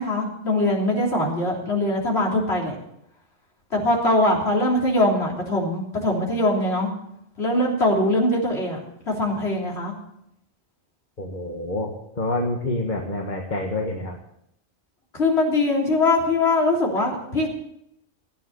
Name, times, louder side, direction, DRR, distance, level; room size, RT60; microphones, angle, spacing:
voice 1, 0.0-2.8 3.7-6.9 7.4-8.8 9.1-9.9 15.1-17.5, left 1 dB, 65° left, -2 dB, 3.8 m, -22 dB
voice 2, 11.2-11.9 12.2-14.2, left 2 dB, 40° left, 1 dB, 1.7 m, -27 dB
16.0 x 9.3 x 6.9 m, 0.79 s
omnidirectional pair, 1.2 m